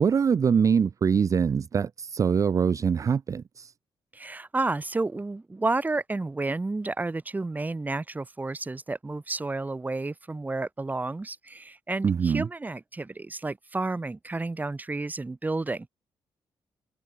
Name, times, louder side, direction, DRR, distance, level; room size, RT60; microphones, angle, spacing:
voice 1, 0.0-3.7 12.0-12.5, right 6 dB, 35° right, 0.4 m, -23 dB
voice 2, 4.1-15.9, right 3 dB, 15° right, 1.2 m, -31 dB
cardioid pair, 110°, 9 cm